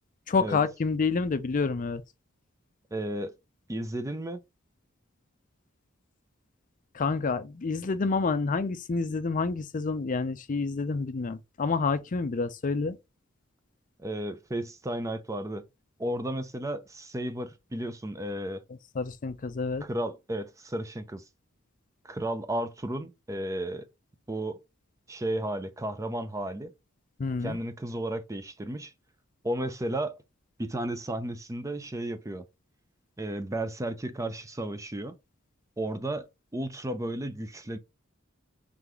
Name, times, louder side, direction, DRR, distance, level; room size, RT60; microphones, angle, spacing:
voice 1, 0.3-2.0 6.9-13.0 19.0-19.9 27.2-27.6, left 4 dB, 40° left, 0.5 m, -28 dB
voice 2, 2.9-3.3 3.7-4.4 14.0-15.6 16.0-18.6 19.8-21.2 22.0-23.9 24.3-24.6 25.1-26.7 27.4-28.9 29.4-30.2 30.6-32.5 33.2-35.2 35.8-36.3 36.5-37.8, right 1 dB, 15° right, 0.5 m, -33 dB
3.8 x 3.4 x 3.0 m
head